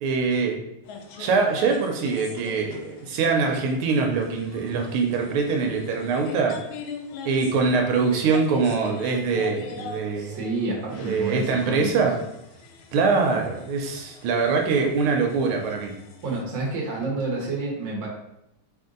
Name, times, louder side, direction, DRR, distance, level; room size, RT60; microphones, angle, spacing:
voice 1, 0.0-0.6 1.2-6.6 7.2-10.4 11.0-12.2 12.9-15.9, right 4 dB, 85° right, 2 dB, 1.5 m, -23 dB
sound 1, 0.8-16.4, left 5 dB, 75° left, 1.3 m, -42 dB
voice 2, 10.2-11.9 16.2-18.1, right 3 dB, 45° right, -3 dB, 1.1 m, -29 dB
3.9 x 2.6 x 3.7 m, 0.82 s
omnidirectional pair, 2.4 m